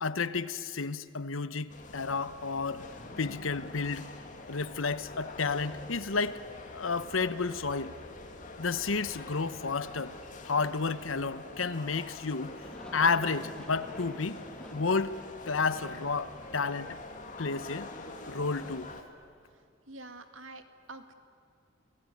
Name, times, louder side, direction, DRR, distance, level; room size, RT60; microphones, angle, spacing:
voice 1, 0.0-2.8 3.2-4.1 4.5-6.4 6.7-7.9 8.6-10.1 10.4-12.5 12.9-14.4 14.7-15.2 15.5-16.9 17.4-17.9 18.3-18.9, left 4 dB, 90° left, 14 dB, 1.0 m, -31 dB
sound 1, 1.7-19.0, left 2 dB, 40° left, 2.4 m, -45 dB
Aircraft, 12.6-19.3, equal, 5° left, 1.1 m, -51 dB
voice 2, 19.5-21.1, right 2 dB, 80° right, 8 dB, 1.9 m, -48 dB
28.0 x 18.5 x 9.8 m, 2.2 s
head